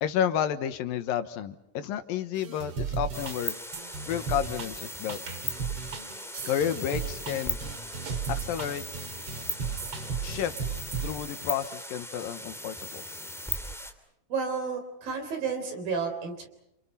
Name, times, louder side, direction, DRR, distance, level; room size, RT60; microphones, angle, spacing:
voice 1, 0.0-3.5 4.1-5.2 6.4-7.6 8.3-8.9 10.2-10.6 10.9-13.0, left 9 dB, 85° left, 10 dB, 3.0 m, -31 dB
sound 1, 2.3-11.1, right 6 dB, 45° right, 2.7 m, -35 dB
sound 2, 3.1-13.9, equal, ahead, 2.1 m, -38 dB
voice 2, 14.3-16.5, right 5 dB, 80° right, 6 dB, 5.6 m, -31 dB
29.5 x 28.5 x 5.7 m, 0.80 s
omnidirectional pair, 4.0 m